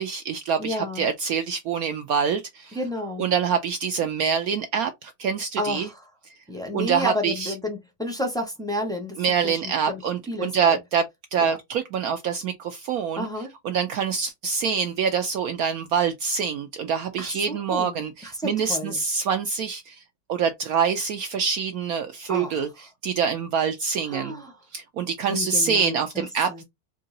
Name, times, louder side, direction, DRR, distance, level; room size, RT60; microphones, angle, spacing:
voice 1, 0.0-2.8 3.2-5.9 6.7-7.5 9.2-11.0 11.3-13.3 13.6-20.0 20.3-22.7 23.0-24.4 24.7-26.6, right 6 dB, 75° right, 0.8 m, -25 dB
voice 2, 0.6-1.1 2.7-3.3 5.6-6.1 6.5-10.0 10.3-10.8 11.4-11.6 13.2-13.5 17.2-19.0 22.3-22.7 24.1-24.6 25.3-26.6, left 1 dB, 5° left, 0.4 m, -31 dB
3.7 x 2.7 x 3.7 m
omnidirectional pair, 2.0 m